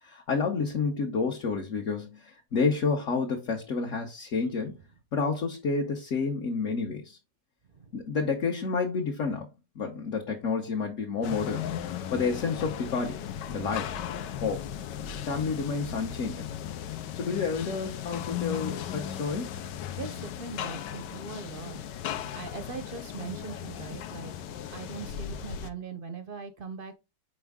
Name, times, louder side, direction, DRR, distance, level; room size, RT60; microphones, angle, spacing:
voice 1, 0.0-4.8 5.1-7.2 7.9-9.5 9.7-11.7 12.1-14.0 14.3-14.7 15.2-16.5 17.1-19.6, left 4 dB, 50° left, 1.3 m, -30 dB
voice 2, 7.7-8.1 11.2-11.3 14.3-14.4 17.2-17.4 19.9-22.1 22.3-24.3 24.7-26.9, right 5 dB, 50° right, 0.6 m, -41 dB
sound 1, 11.2-25.7, left 9 dB, 90° left, 1.3 m, -37 dB
6.3 x 4.7 x 3.5 m
omnidirectional pair, 1.8 m